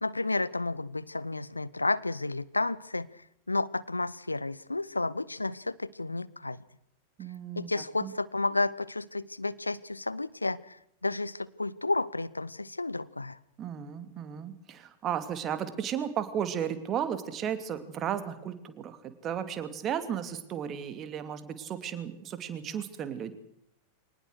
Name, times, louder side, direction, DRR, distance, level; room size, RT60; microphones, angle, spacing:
voice 1, 0.0-3.1 3.5-6.6 7.6-13.4, left 2 dB, 80° left, 19 dB, 0.7 m, -31 dB
voice 2, 7.2-8.1 13.6-23.3, right 9 dB, 30° right, 10 dB, 2.7 m, -34 dB
24.0 x 19.0 x 6.6 m, 0.77 s
figure-of-eight pair, 90°, 0 cm